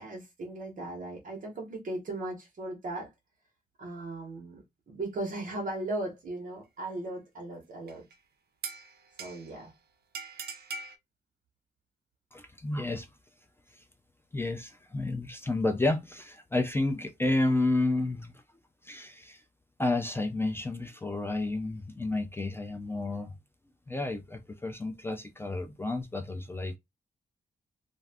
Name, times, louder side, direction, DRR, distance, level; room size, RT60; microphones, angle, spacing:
voice 1, 0.0-3.1 3.8-8.0 9.2-9.7, right 2 dB, 55° right, 0.9 m, -37 dB
sound 1, 7.9-8.1 8.6-9.6 10.1-11.0, right 4 dB, 70° right, 0.5 m, -41 dB
voice 2, 12.3-13.1 13.7-13.8 14.3-18.4 18.8-19.4 19.8-23.3 23.9-26.8, left 2 dB, 15° left, 0.3 m, -31 dB
2.5 x 2.3 x 3.3 m
wide cardioid pair, 150°, 17 cm